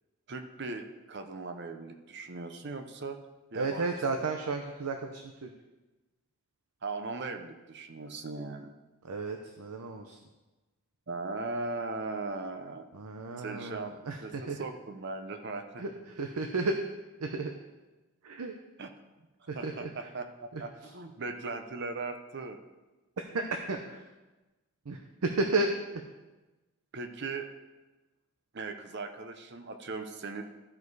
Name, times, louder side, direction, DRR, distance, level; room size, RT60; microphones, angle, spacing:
voice 1, 0.3-3.2 3.5-4.1 6.8-8.7 11.1-12.9 13.4-15.8 18.8-18.9 19.4-22.6 26.9-27.5 28.5-30.4, right 3 dB, 50° right, 7 dB, 0.7 m, -38 dB
voice 2, 3.5-5.5 9.0-10.2 12.9-14.6 15.8-16.8 17.2-17.5 18.2-18.5 19.5-20.1 20.5-20.6 23.2-24.0 24.9-26.0, right 3 dB, 90° right, 4 dB, 0.7 m, -33 dB
13.0 x 4.9 x 4.7 m, 1.1 s
head